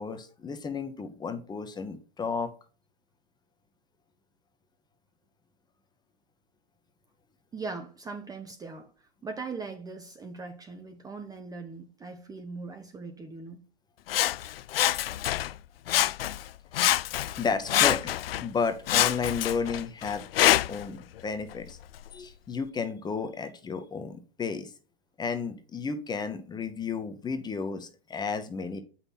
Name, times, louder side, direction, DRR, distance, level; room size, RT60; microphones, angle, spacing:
voice 1, 0.0-2.5 17.4-18.0 18.4-21.8 22.1-24.7 25.2-28.8, left 5 dB, 15° left, 0.9 m, -32 dB
voice 2, 7.5-13.6 17.7-17.8, right 4 dB, 10° right, 0.8 m, -40 dB
Sawing, 14.1-15.6 15.9-16.5 16.7-18.5 18.9-20.9 21.5-21.6, left 13 dB, 70° left, 0.5 m, -26 dB
7.9 x 5.7 x 4.1 m
hypercardioid pair, 115°, 31 cm